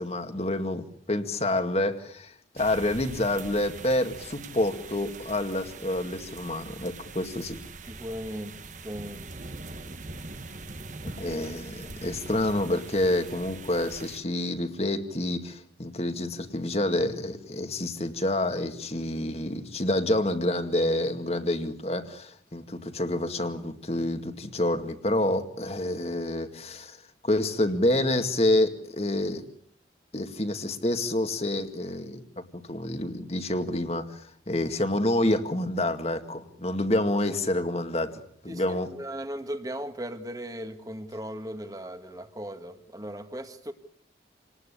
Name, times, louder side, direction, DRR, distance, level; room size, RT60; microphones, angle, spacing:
voice 1, 0.0-7.6 11.2-27.0 27.2-29.4 30.1-38.9, left 1 dB, 35° left, 7 dB, 2.1 m, -28 dB
sound 1, 2.6-14.2, right 3 dB, 45° right, 1.4 m, -42 dB
voice 2, 7.9-9.3 36.7-36.8 38.5-43.7, equal, 20° right, 8 dB, 1.9 m, -37 dB
28.0 x 19.5 x 8.5 m, 0.63 s
head